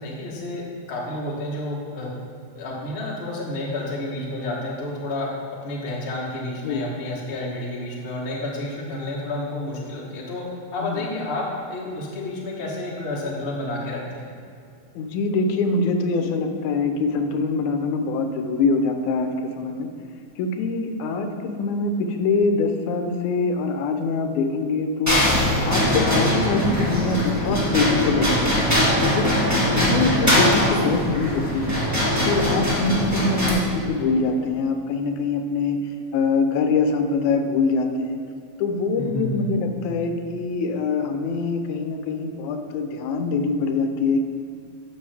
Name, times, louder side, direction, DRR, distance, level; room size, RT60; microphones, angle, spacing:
voice 1, 0.0-2.1 2.6-5.3 5.6-10.4 10.7-14.2 29.6-30.0 39.0-39.6, left 1 dB, 70° left, -3 dB, 0.5 m, -30 dB
voice 2, 15.0-19.3 19.6-19.9 20.4-25.2 25.6-28.6 29.0-31.8 32.3-35.8 36.1-38.2 38.6-44.2, left 3 dB, 85° left, 5 dB, 2.1 m, -24 dB
sound 1, 25.1-33.5, left 1 dB, 10° right, 0.7 m, -21 dB
12.0 x 6.1 x 3.4 m, 2.4 s
omnidirectional pair, 3.4 m